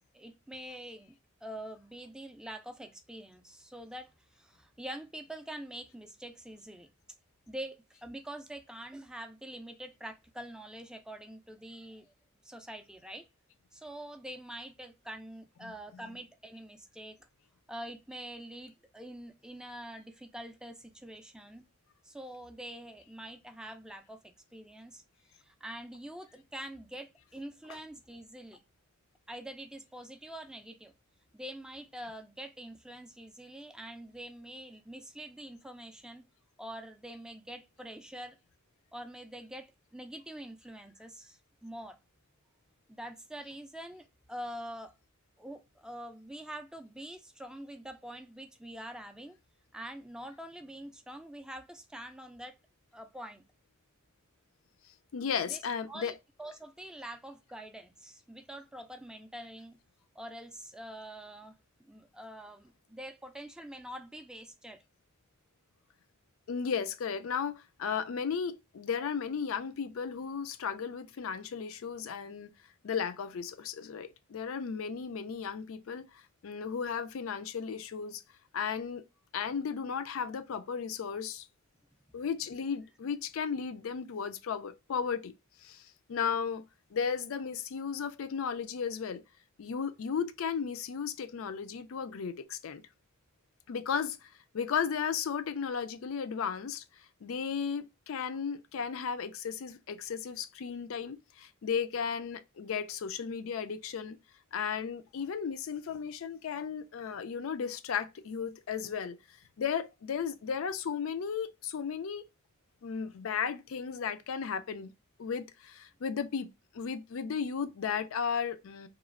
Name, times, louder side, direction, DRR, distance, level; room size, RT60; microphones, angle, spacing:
voice 1, 0.1-1.2 1.4-6.9 7.5-12.1 12.4-13.3 13.7-17.2 17.7-21.7 22.0-25.0 25.3-28.6 29.3-30.9 31.3-36.3 36.6-38.4 38.9-42.0 42.9-44.9 45.4-49.4 49.7-52.6 52.9-53.4 55.5-55.6 55.9-56.1 56.4-59.8 60.2-61.6 61.9-64.8, right 1 dB, 5° right, 0.3 m, -45 dB
voice 2, 15.6-16.0 55.1-56.1 66.5-72.5 72.8-78.2 78.5-79.0 79.3-81.5 82.1-85.3 85.6-86.6 86.9-89.2 89.6-92.8 93.7-94.3 94.5-96.8 97.2-104.2 104.5-109.2 109.6-112.2 112.8-114.9 115.2-116.5 116.7-118.9, left 6 dB, 70° left, 0.4 m, -35 dB
3.0 x 2.4 x 2.3 m
head